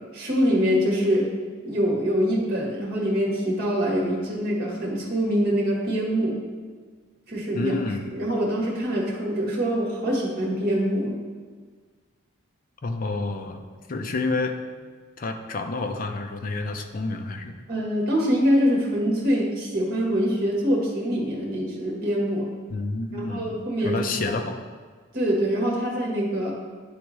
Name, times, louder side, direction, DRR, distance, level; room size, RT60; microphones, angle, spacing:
voice 1, 0.1-1.3 1.6-6.4 7.3-7.7 8.1-11.1 17.7-22.5 23.1-24.3 25.1-26.5, equal, 50° right, -3 dB, 1.4 m, -24 dB
voice 2, 7.5-8.1 12.8-13.6 13.9-14.6 15.2-17.6 22.7-23.6 23.8-24.6, left 3 dB, 40° left, 5 dB, 0.5 m, -29 dB
10.5 x 3.5 x 3.1 m, 1.5 s
head